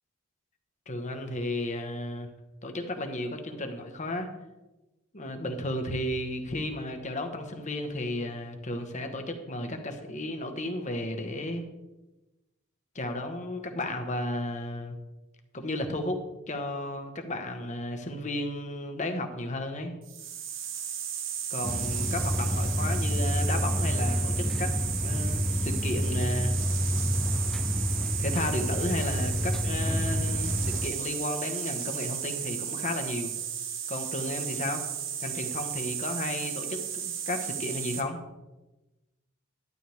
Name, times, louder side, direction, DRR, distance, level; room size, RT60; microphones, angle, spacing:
voice 1, 0.9-2.3 2.6-4.3 5.1-11.6 12.9-14.9 15.5-16.2 16.5-20.0 21.5-24.7 25.0-26.6 28.2-33.3 33.9-34.8 35.2-38.2, left 1 dB, 35° left, 5 dB, 1.3 m, -33 dB
sound 1, 20.0-38.0, right 9 dB, 70° right, 1.3 m, -34 dB
sound 2, 21.6-30.9, equal, ahead, 0.3 m, -29 dB
12.0 x 11.0 x 3.5 m, 1.1 s
head